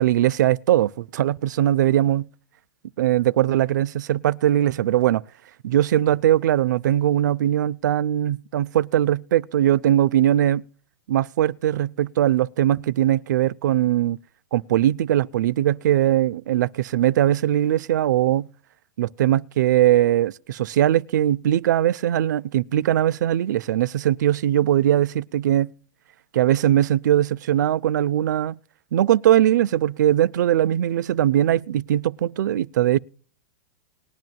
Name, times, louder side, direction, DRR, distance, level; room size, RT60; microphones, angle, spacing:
voice 1, 0.0-2.3 3.0-5.2 5.6-10.6 11.1-14.2 14.5-18.5 19.0-25.7 26.3-28.6 28.9-33.0, right 12 dB, 80° right, 0.4 m, -20 dB
19.5 x 10.5 x 2.3 m
supercardioid pair, 150°, 10 cm